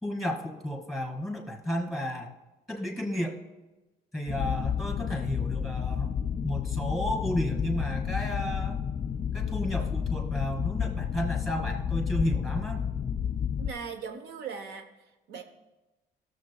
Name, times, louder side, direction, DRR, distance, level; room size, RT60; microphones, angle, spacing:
voice 1, 0.0-2.3 2.7-3.4 4.1-6.1 6.4-8.8 9.3-12.8, equal, ahead, 1 dB, 1.9 m, -32 dB
sound 1, 4.3-13.7, left 8 dB, 35° left, 0.4 m, -31 dB
voice 2, 13.6-14.9 15.3-15.4, right 5 dB, 80° right, 6 dB, 0.9 m, -38 dB
17.5 x 7.2 x 2.3 m, 1.1 s
cardioid pair, 110°, 17 cm